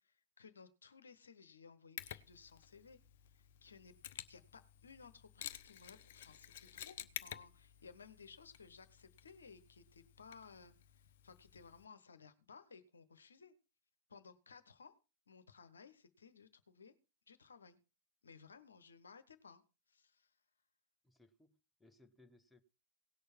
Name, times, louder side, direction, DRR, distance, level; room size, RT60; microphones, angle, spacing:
voice 1, 0.0-3.0 3.3-13.5 14.1-14.9 15.3-16.9 17.3-17.8 18.2-19.6 19.9-20.3, left 5 dB, 70° left, 1.1 m, -59 dB
Mechanisms, 2.0-11.8, left 11 dB, 55° left, 0.7 m, -52 dB
voice 2, 21.0-22.6, left 2 dB, 5° left, 1.1 m, -66 dB
17.5 x 6.6 x 4.5 m
figure-of-eight pair, 90°, 0 cm